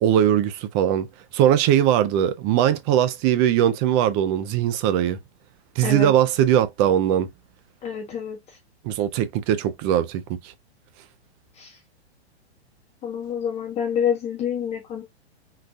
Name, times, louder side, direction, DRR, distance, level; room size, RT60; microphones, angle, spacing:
voice 1, 0.0-1.1 1.3-5.2 5.8-7.3 8.8-10.5, right 10 dB, 25° right, 0.4 m, -20 dB
voice 2, 5.8-6.1 7.8-8.4 11.6-11.8 13.0-15.0, left 8 dB, 20° left, 0.6 m, -27 dB
3.8 x 2.2 x 2.6 m
hypercardioid pair, 120°, 33 cm